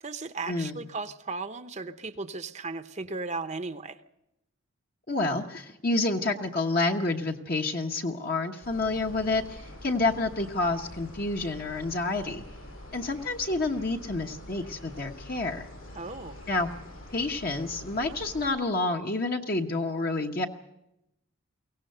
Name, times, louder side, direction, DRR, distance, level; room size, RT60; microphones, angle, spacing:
voice 1, 0.0-4.0 15.9-16.4, right 3 dB, 35° right, 10 dB, 0.8 m, -36 dB
voice 2, 5.1-12.4 12.9-15.7 16.5-16.7 17.1-20.5, left 2 dB, 45° left, 2 dB, 1.1 m, -29 dB
sound 1, 8.6-18.5, left 1 dB, 85° left, 7.0 m, -45 dB
23.0 x 17.5 x 6.7 m, 0.85 s
head